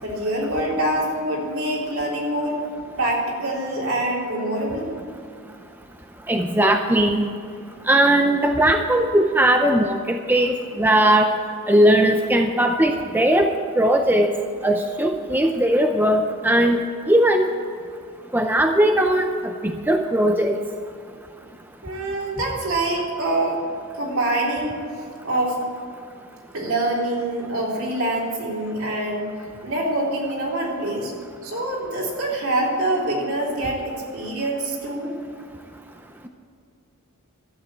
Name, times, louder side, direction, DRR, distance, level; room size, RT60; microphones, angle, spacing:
voice 1, 0.0-2.6 3.0-4.9 21.8-23.6 23.9-25.6 26.5-29.3 29.6-31.1 31.4-35.1, right 1 dB, 70° right, -3 dB, 3.8 m, -25 dB
voice 2, 6.3-7.3 7.9-11.3 11.7-13.5 13.8-14.3 14.6-16.8 17.1-17.5 18.3-20.6, right 1 dB, 10° right, 4 dB, 0.5 m, -19 dB
12.5 x 8.3 x 8.6 m, 2.4 s
head